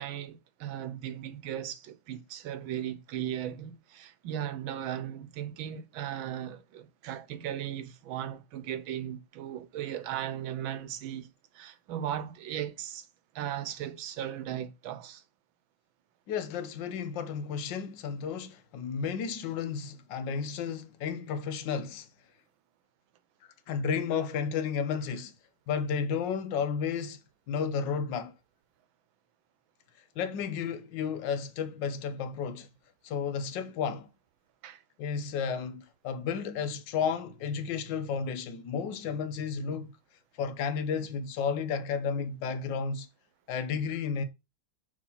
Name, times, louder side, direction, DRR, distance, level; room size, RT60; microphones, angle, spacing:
voice 1, 0.0-13.1 13.3-15.2 34.6-34.8, right 10 dB, 85° right, 1.6 m, -37 dB
voice 2, 16.3-22.1 23.7-25.3 25.7-27.2 27.5-28.3 30.2-32.7 33.0-34.1 35.0-40.0 40.4-43.1 43.5-44.2, left 6 dB, 75° left, 1.5 m, -32 dB
6.3 x 3.6 x 5.5 m
omnidirectional pair, 2.1 m